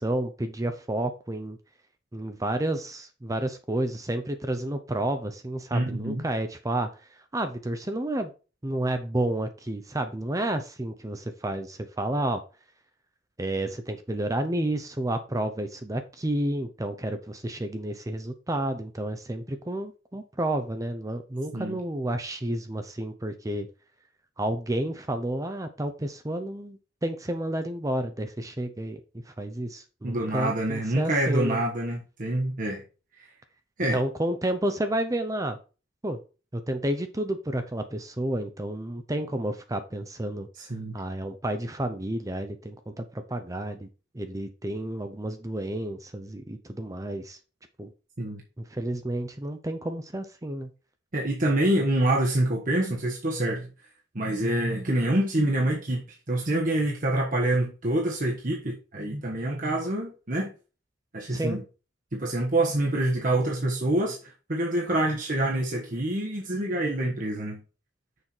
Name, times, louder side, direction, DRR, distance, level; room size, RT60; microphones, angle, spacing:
voice 1, 0.0-1.6 2.1-6.9 7.3-8.3 8.6-12.4 13.4-23.7 24.4-29.0 29.3-31.6 33.9-35.6 36.0-36.2 36.5-40.5 40.9-43.9 44.1-47.4 47.8-47.9 48.6-50.7 61.3-61.6, right 1 dB, 20° right, 0.7 m, -30 dB
voice 2, 5.7-6.2 21.5-21.8 30.0-32.8 33.8-34.0 40.6-40.9 48.2-48.4 51.1-53.7 54.1-60.5 61.1-61.6 62.1-67.6, right 1 dB, 45° right, 1.3 m, -26 dB
6.5 x 5.7 x 4.4 m
head